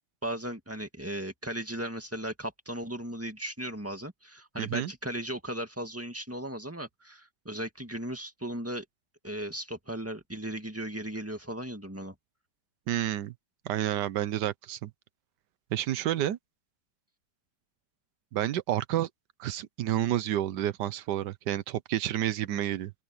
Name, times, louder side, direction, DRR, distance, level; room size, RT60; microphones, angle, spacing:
voice 1, 0.2-8.9 9.2-12.2, right 1 dB, 10° right, 1.9 m, -36 dB
voice 2, 4.6-4.9 12.9-13.3 13.6-14.9 15.7-16.4 18.3-19.1 19.4-22.9, right 12 dB, 80° right, 1.4 m, -30 dB
open air
omnidirectional pair, 1.8 m